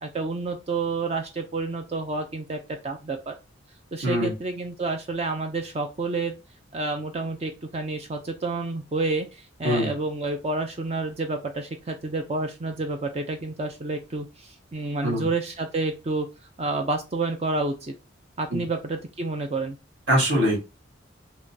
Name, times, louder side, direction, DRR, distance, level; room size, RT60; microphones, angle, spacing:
voice 1, 0.0-3.3 3.9-6.3 6.7-16.3 16.6-17.9 18.4-19.8, right 3 dB, 30° right, 5 dB, 0.4 m, -29 dB
voice 2, 20.1-20.6, equal, 60° right, -3 dB, 1.7 m, -22 dB
3.6 x 2.9 x 2.7 m, 0.27 s
head